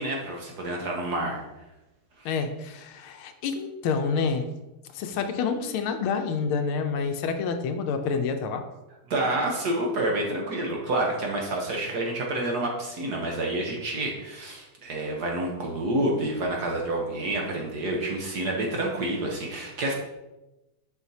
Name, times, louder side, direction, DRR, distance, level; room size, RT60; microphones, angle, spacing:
voice 1, 0.0-1.4 2.2-2.3 9.1-19.9, right 1 dB, 60° right, 0 dB, 1.3 m, -28 dB
voice 2, 2.2-4.5 4.9-8.6, left 5 dB, 80° left, 6 dB, 1.5 m, -28 dB
7.1 x 6.0 x 2.7 m, 0.99 s
omnidirectional pair, 2.4 m